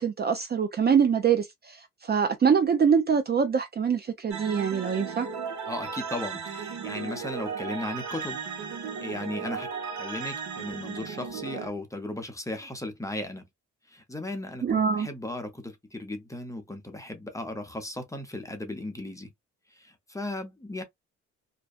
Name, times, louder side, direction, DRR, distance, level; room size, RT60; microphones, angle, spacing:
voice 1, 0.0-5.3 14.6-15.1, right 6 dB, 35° right, 0.5 m, -24 dB
sound 1, 4.3-11.7, right 6 dB, 65° right, 1.0 m, -35 dB
voice 2, 5.7-8.4 9.0-9.7 10.0-13.5 13.9-19.3 19.7-20.8, left 1 dB, 10° left, 0.7 m, -36 dB
2.6 x 2.2 x 2.3 m
cardioid pair, 90°, 30 cm